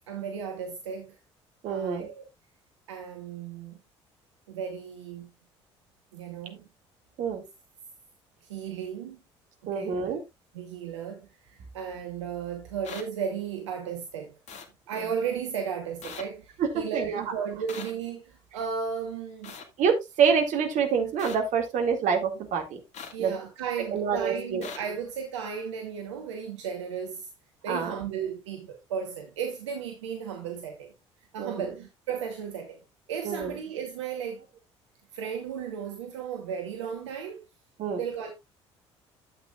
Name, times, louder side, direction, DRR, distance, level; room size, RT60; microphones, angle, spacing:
voice 1, 0.1-1.2 1.7-2.2 2.9-3.8 4.5-5.3 6.1-6.7 8.4-9.2 9.6-10.2 10.5-14.4 14.9-19.6 23.1-27.3 27.6-30.9 31.3-32.8 33.1-34.4 35.1-37.4 37.9-38.3, right 7 dB, 80° right, 1.1 m, -35 dB
voice 2, 1.6-2.1 7.2-7.4 9.7-10.2 16.6-17.2 19.8-22.8 23.2-23.3 23.9-24.7 27.7-28.0 31.4-31.7 33.2-33.6 37.8-38.0, right 6 dB, 55° right, 2.2 m, -26 dB
sound 1, 12.8-13.0 14.5-14.7 16.0-16.2 17.7-17.9 19.4-19.6 21.2-21.4 22.9-23.1 24.6-24.8, left 6 dB, 50° left, 2.0 m, -40 dB
12.0 x 8.1 x 2.4 m
figure-of-eight pair, 55°, 15 cm